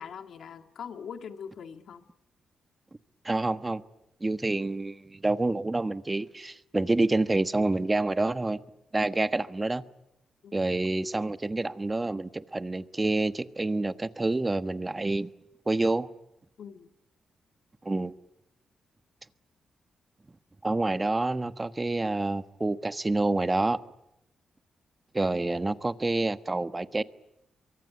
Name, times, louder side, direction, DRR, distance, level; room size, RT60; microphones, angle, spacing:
voice 1, 0.0-2.1 10.4-10.7 16.6-16.9, left 7 dB, 75° left, 2.0 m, -42 dB
voice 2, 3.2-3.8 4.2-8.6 8.9-9.8 10.5-15.3 15.7-16.1 17.8-18.1 20.6-23.8 25.1-27.0, right 2 dB, 20° right, 1.3 m, -28 dB
24.0 x 23.5 x 10.0 m
cardioid pair, 75°, 0 cm